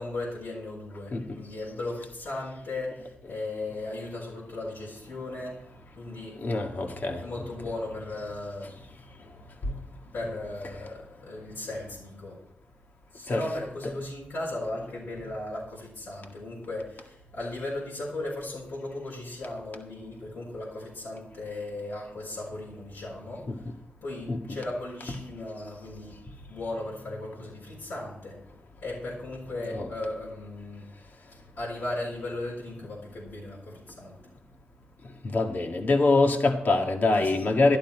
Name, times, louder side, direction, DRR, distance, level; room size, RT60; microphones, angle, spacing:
voice 1, 0.0-5.6 6.0-6.4 7.2-8.7 10.1-12.4 13.1-23.6 24.0-26.2 26.5-28.4 28.8-30.9 31.6-34.2 37.1-37.6, left 2 dB, 80° left, -5 dB, 5.2 m, -36 dB
voice 2, 6.4-7.2 9.7-9.8 13.3-13.4 23.5-23.6 24.3-24.4 29.7-29.9 35.2-37.8, left 3 dB, 55° left, 3 dB, 1.8 m, -24 dB
13.0 x 12.0 x 4.6 m, 0.75 s
cardioid pair, 80°, 4 cm